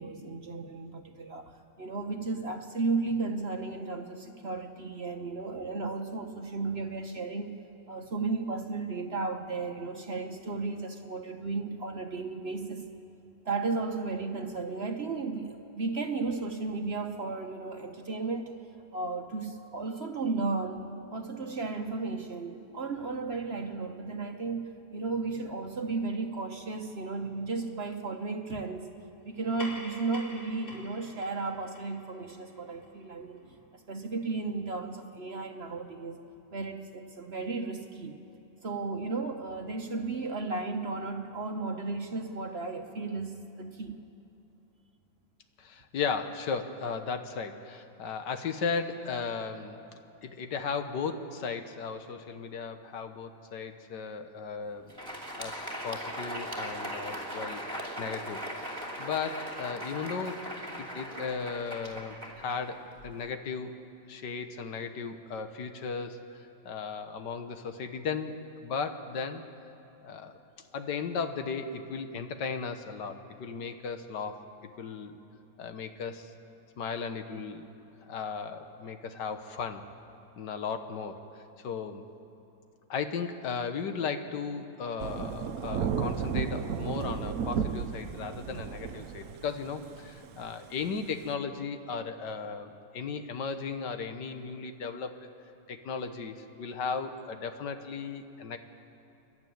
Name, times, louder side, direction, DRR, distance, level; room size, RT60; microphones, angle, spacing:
voice 1, 0.0-1.5 1.8-7.6 7.9-12.9 13.4-18.6 18.9-20.8 21.1-28.9 29.2-36.2 36.5-38.2 38.6-44.0, right 3 dB, 45° right, 5 dB, 1.1 m, -34 dB
sound 1, 29.3-34.2, left 1 dB, 60° left, 4.0 m, -48 dB
voice 2, 45.6-49.8 50.2-55.0 55.4-57.6 58.0-58.4 59.0-60.4 60.8-63.7 64.1-69.4 70.0-70.4 70.7-74.4 74.8-75.2 75.6-76.3 76.8-77.7 78.1-79.8 80.4-81.2 81.6-82.0 82.9-95.2 95.7-98.6, left 5 dB, 80° left, 8 dB, 1.8 m, -36 dB
Crowd, 54.8-63.2, equal, 10° right, 2.5 m, -39 dB
Thunder / Rain, 85.0-91.3, right 7 dB, 65° right, 1.1 m, -33 dB
28.5 x 12.0 x 9.3 m, 2.9 s
omnidirectional pair, 1.8 m